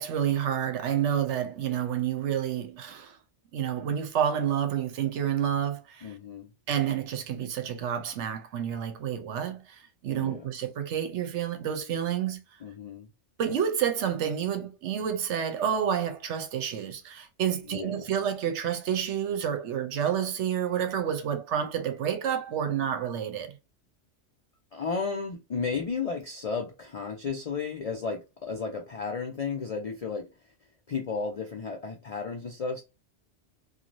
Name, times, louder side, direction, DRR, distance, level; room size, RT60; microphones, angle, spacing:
voice 1, 0.0-3.2 3.5-6.1 6.7-12.4 13.4-23.6, right 9 dB, 75° right, 0.9 m, -29 dB
voice 2, 6.0-6.5 10.1-10.5 12.6-13.1 17.7-18.0 24.7-30.3 30.9-32.8, left 5 dB, 70° left, 0.3 m, -33 dB
3.1 x 2.3 x 2.5 m
omnidirectional pair, 1.2 m